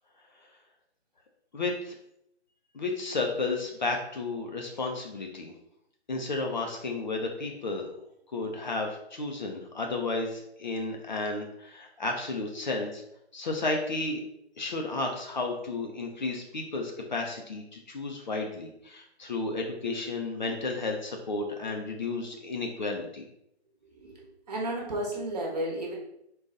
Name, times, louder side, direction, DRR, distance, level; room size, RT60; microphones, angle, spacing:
voice 1, 1.5-1.9 2.7-5.5 6.1-7.9 8.3-13.0 13.3-14.2 14.6-23.2, left 3 dB, 45° left, 2 dB, 0.5 m, -32 dB
voice 2, 23.9-25.9, right 1 dB, 35° right, -2 dB, 1.0 m, -33 dB
3.9 x 2.3 x 3.8 m, 0.77 s
figure-of-eight pair, 155°, 33 cm